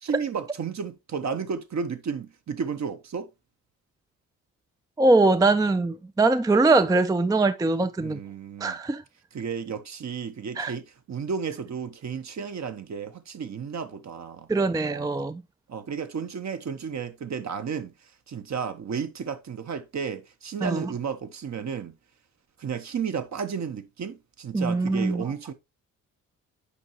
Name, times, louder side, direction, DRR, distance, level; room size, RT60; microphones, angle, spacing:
voice 1, 0.0-3.3 8.0-8.8 9.3-14.5 14.8-15.1 15.7-17.9 18.3-21.9 22.6-25.5, right 6 dB, 45° right, 1.0 m, -33 dB
voice 2, 5.0-8.2 8.6-9.0 10.6-10.7 14.5-15.4 20.6-20.9 24.5-25.2, right 3 dB, 10° right, 0.5 m, -22 dB
8.5 x 5.5 x 3.0 m
hypercardioid pair, 45°, 40 cm